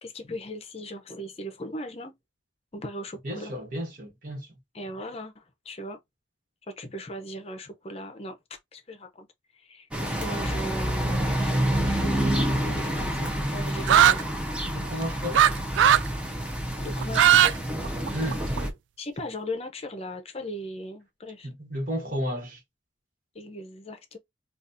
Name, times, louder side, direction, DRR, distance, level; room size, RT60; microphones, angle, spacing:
voice 1, 0.0-2.1 2.7-3.5 4.7-6.0 6.7-8.4 8.7-9.3 9.5-11.5 11.8-14.3 16.8-17.6 19.0-21.5 23.3-24.2, equal, 30° left, 0.7 m, -38 dB
voice 2, 3.2-4.5 14.7-15.5 18.1-18.7 21.4-22.6, equal, 45° right, 1.4 m, -33 dB
sound 1, 9.9-18.7, right 1 dB, 5° right, 0.7 m, -28 dB
sound 2, 13.9-14.2 15.3-15.5 15.8-16.1 17.0-17.5 17.8-18.6, right 10 dB, 80° right, 0.3 m, -17 dB
4.0 x 2.4 x 2.6 m
head